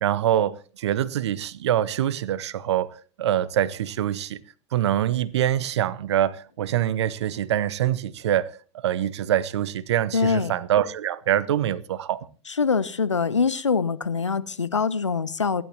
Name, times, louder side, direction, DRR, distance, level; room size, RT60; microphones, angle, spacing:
voice 1, 0.0-2.9 3.2-4.4 4.7-8.5 8.8-12.3, right 11 dB, 70° right, 0.9 m, -24 dB
voice 2, 10.1-10.5 12.5-15.6, left 5 dB, 90° left, 0.9 m, -24 dB
28.0 x 11.0 x 2.9 m
figure-of-eight pair, 85°, 15 cm